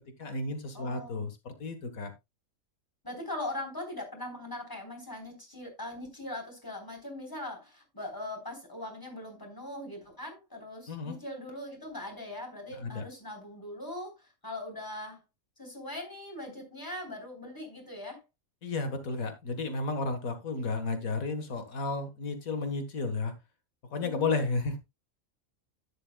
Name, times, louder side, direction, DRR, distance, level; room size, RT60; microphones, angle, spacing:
voice 1, 0.2-2.1 10.9-11.2 12.8-13.0 18.6-23.3 23.9-24.8, left 3 dB, 85° left, 1.9 m, -32 dB
voice 2, 0.7-1.3 3.0-15.2 15.6-18.2 24.0-24.3, left 1 dB, 15° left, 3.9 m, -41 dB
11.5 x 10.5 x 2.3 m
omnidirectional pair, 1.4 m